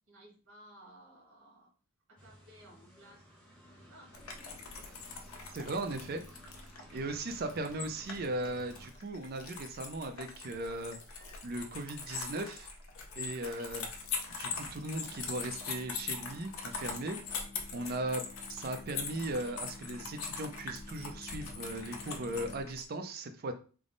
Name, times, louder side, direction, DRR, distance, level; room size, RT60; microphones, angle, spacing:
voice 1, 0.1-1.7 2.1-3.3 3.9-4.1, right 1 dB, 85° right, -3 dB, 1.3 m, -57 dB
sound 1, 2.2-8.9, equal, 5° left, 0.9 m, -55 dB
sound 2, 4.1-22.8, left 5 dB, 80° left, 0.6 m, -42 dB
voice 2, 5.5-6.2 6.9-11.0 11.4-12.7 13.2-13.9 14.3-17.2 17.7-18.2 18.5-23.5, right 1 dB, 45° right, 7 dB, 0.5 m, -38 dB
sound 3, 12.8-22.6, left 3 dB, 40° left, 0.4 m, -53 dB
3.5 x 2.0 x 3.8 m, 0.38 s
head